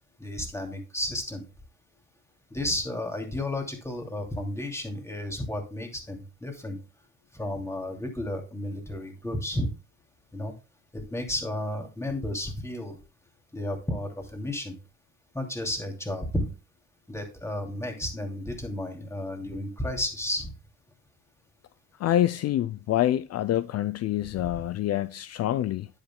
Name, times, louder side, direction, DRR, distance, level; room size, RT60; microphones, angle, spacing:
voice 1, 0.2-1.5 2.5-6.8 7.3-9.7 10.3-10.5 10.9-13.0 13.5-14.8 15.3-16.5 17.1-20.5 24.2-24.6, left 1 dB, 10° left, 2.6 m, -32 dB
voice 2, 22.0-25.9, left 12 dB, 55° left, 0.5 m, -26 dB
10.0 x 8.2 x 2.2 m
cardioid pair, 90°, 30 cm